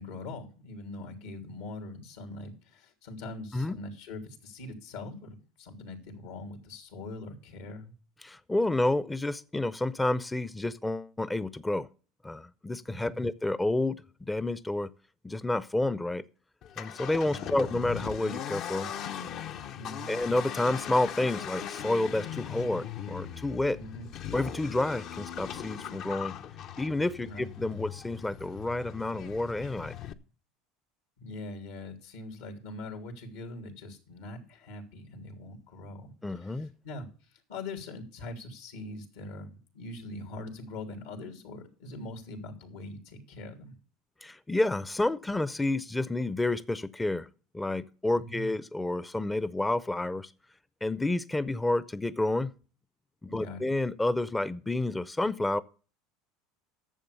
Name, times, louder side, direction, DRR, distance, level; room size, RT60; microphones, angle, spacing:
voice 1, 0.0-7.9 12.9-13.2 17.2-17.8 19.7-20.2 23.8-24.1 27.2-27.5 31.2-43.7 48.1-48.5 53.3-53.7, left 2 dB, 85° left, 3.2 m, -42 dB
voice 2, 8.2-11.9 12.2-14.9 15.2-16.2 16.8-18.9 20.1-23.8 24.3-26.3 26.8-29.9 36.2-36.7 44.2-47.3 47.5-50.3 50.8-52.5 53.2-55.6, left 2 dB, 10° left, 0.6 m, -29 dB
Accelerating revving vroom, 16.6-30.1, left 9 dB, 55° left, 0.8 m, -39 dB
11.0 x 7.3 x 6.9 m
supercardioid pair, 95°, 0 cm